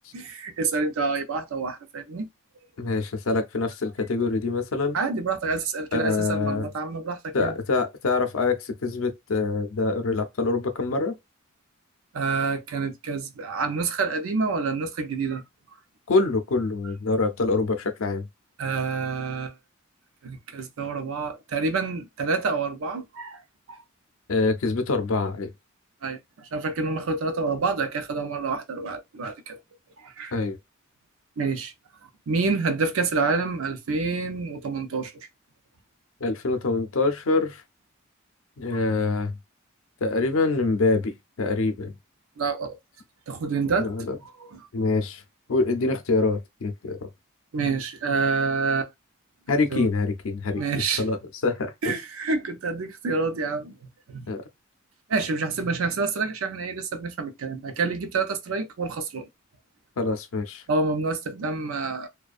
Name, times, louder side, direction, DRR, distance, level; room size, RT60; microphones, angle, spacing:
voice 1, 0.1-2.3 4.9-7.6 12.1-15.4 18.6-19.5 20.2-23.4 23.7-23.8 26.0-29.6 30.0-30.4 31.4-31.7 32.0-35.1 42.4-42.8 43.3-43.9 44.2-44.7 47.5-48.9 49.7-49.9 50.5-51.0 51.8-53.7 54.1-54.3 55.1-59.3 60.7-62.1, right 4 dB, 80° right, 0.5 m, -28 dB
voice 2, 2.8-5.0 5.9-6.7 7.3-11.1 16.1-18.3 24.3-25.5 30.3-30.6 36.2-37.6 38.6-39.4 40.0-41.9 43.8-44.2 44.7-45.2 45.5-47.1 49.5-52.0 54.3-54.4 60.0-60.6, left 3 dB, 75° left, 0.5 m, -25 dB
2.4 x 2.2 x 2.4 m
head